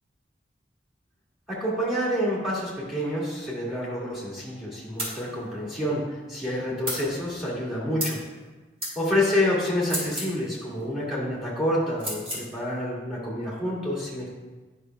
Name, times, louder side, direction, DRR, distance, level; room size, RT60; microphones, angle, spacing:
voice 1, 1.5-6.0 6.3-8.2 9.0-14.3, left 1 dB, ahead, -6 dB, 2.0 m, -28 dB
sound 1, 5.0-5.2 6.8-7.0 8.0-8.2 8.8-8.9 9.8-10.3 12.0-12.4, equal, 35° right, 2.3 m, -31 dB
10.0 x 5.6 x 2.3 m, 1.2 s
head